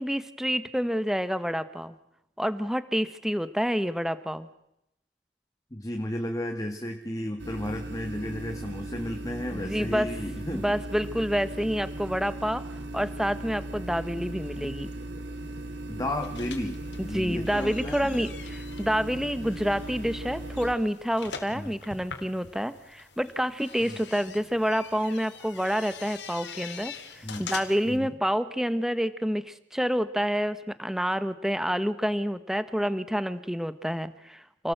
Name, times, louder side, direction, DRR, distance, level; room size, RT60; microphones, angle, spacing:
voice 1, 0.0-1.9 2.4-4.5 9.5-10.1 10.5-12.6 12.9-14.9 17.0-34.7, equal, 5° right, 13 dB, 1.0 m, -28 dB
voice 2, 5.7-10.8 15.9-18.1 21.5-21.7 23.8-24.0 27.2-27.5 27.8-28.2, left 1 dB, 20° left, 4 dB, 2.1 m, -33 dB
sound 1, 7.4-20.8, right 1 dB, 80° right, 2.5 m, -38 dB
sound 2, 16.1-28.0, left 5 dB, 80° left, 3.5 m, -44 dB
29.0 x 18.5 x 7.9 m, 0.82 s
head